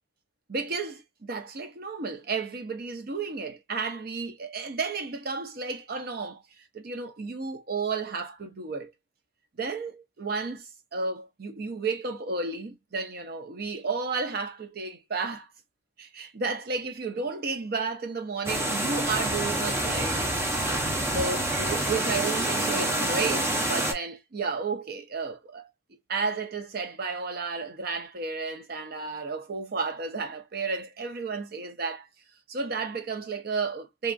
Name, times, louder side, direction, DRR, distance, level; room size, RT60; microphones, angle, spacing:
voice 1, 0.5-6.4 6.7-8.9 9.6-10.6 10.9-15.5 16.0-20.2 21.1-25.7 26.1-32.1 32.5-34.1, right 4 dB, 55° right, 0.7 m, -32 dB
sound 1, 18.5-23.9, right 1 dB, 15° right, 0.7 m, -27 dB
2.8 x 2.4 x 2.3 m
head